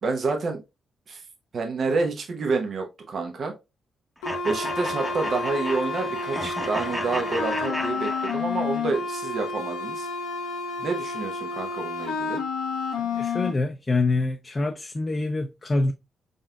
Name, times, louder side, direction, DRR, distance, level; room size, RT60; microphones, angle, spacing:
voice 1, 0.0-0.6 1.1-1.2 1.5-3.5 4.4-10.1 10.8-12.4, right 4 dB, 55° right, 1.0 m, -28 dB
sound 1, 4.2-13.5, left 4 dB, 80° left, 0.7 m, -30 dB
sound 2, 4.2-8.9, equal, ahead, 0.9 m, -34 dB
voice 2, 13.0-15.9, left 3 dB, 35° left, 0.5 m, -26 dB
4.0 x 3.8 x 2.3 m
hypercardioid pair, 45°, 0 cm